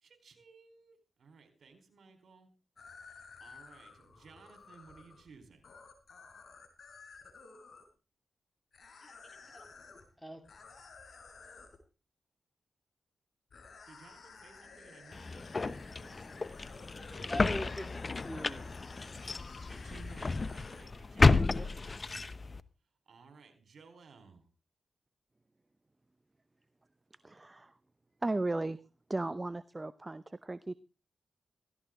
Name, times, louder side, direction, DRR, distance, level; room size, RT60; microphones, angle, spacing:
voice 1, 0.0-2.5 3.1-5.6 13.9-15.5 19.8-21.8 23.1-24.4, right 4 dB, 70° right, 6 dB, 4.2 m, -57 dB
sound 1, 2.8-7.9 8.7-10.0 10.4-11.8 13.5-21.1 21.4-21.6, left 4 dB, 65° left, 3.9 m, -54 dB
voice 2, 9.0-9.7 10.2-10.5 16.9-18.7 19.6-19.8 20.5-20.6 21.5-21.9, equal, ahead, 6 dB, 3.5 m, -44 dB
sound 2, 15.1-22.6, left 3 dB, 45° left, 0.9 m, -31 dB
voice 3, 27.2-27.7 28.2-28.8 29.1-30.7, right 2 dB, 30° right, 15 dB, 0.7 m, -35 dB
16.0 x 15.5 x 3.8 m, 0.33 s
supercardioid pair, 45°, 0 cm